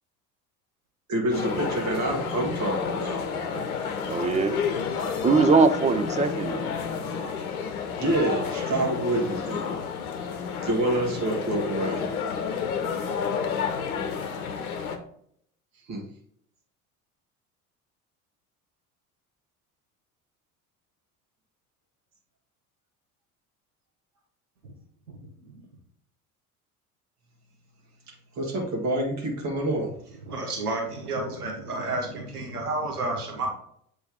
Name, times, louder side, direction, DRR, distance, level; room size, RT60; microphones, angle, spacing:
voice 1, 1.1-3.3 4.9-5.1 8.0-9.7 10.6-12.0 15.9-16.0 28.1-29.9, right 1 dB, 35° right, 0 dB, 1.9 m, -27 dB
sound 1, 1.3-15.0, left 6 dB, 70° left, 0.9 m, -30 dB
voice 2, 4.1-4.6 5.2-6.7, right 4 dB, 15° right, 9 dB, 0.5 m, -21 dB
voice 3, 25.1-25.6 30.2-33.5, right 2 dB, 85° right, 1 dB, 1.2 m, -31 dB
7.9 x 3.5 x 3.6 m, 0.67 s
figure-of-eight pair, 65°, 44 cm